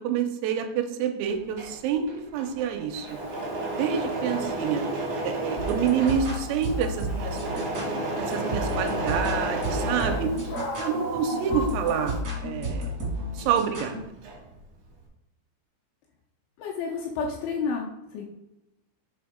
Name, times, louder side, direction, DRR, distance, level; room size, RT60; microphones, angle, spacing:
voice 1, 0.0-2.1 2.3-3.1 3.7-4.8 5.2-7.8 8.2-10.3 10.8-12.9 13.3-14.0, right 7 dB, 85° right, 5 dB, 3.3 m, -28 dB
Engine / Mechanisms, 1.3-10.9 11.3-13.6 13.9-14.6, right 2 dB, 70° right, 1.8 m, -32 dB
Dog, 3.0-12.2, equal, 60° left, 1.5 m, -39 dB
sound 1, 5.6-14.0, equal, 55° right, 1.0 m, -33 dB
voice 2, 16.6-18.2, left 5 dB, 80° left, -2 dB, 2.8 m, -30 dB
7.3 x 3.5 x 5.0 m, 0.94 s
omnidirectional pair, 6.0 m